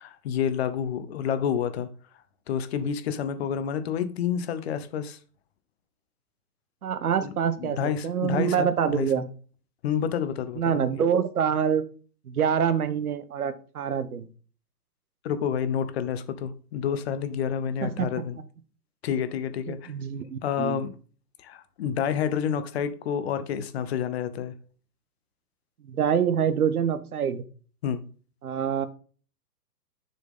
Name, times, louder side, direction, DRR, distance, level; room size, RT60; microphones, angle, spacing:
voice 1, 0.0-1.9 2.5-5.2 7.2-9.1 9.8-11.0 15.2-18.4 19.0-19.9 20.4-20.9 21.4-24.5 27.8-28.0, left 8 dB, 40° left, 1.0 m, -29 dB
voice 2, 6.8-9.3 10.6-11.8 12.3-14.3 17.8-18.2 19.7-20.8 25.8-27.4 28.4-28.9, right 8 dB, 60° right, 1.2 m, -26 dB
6.8 x 6.3 x 3.7 m
figure-of-eight pair, 120°, 49 cm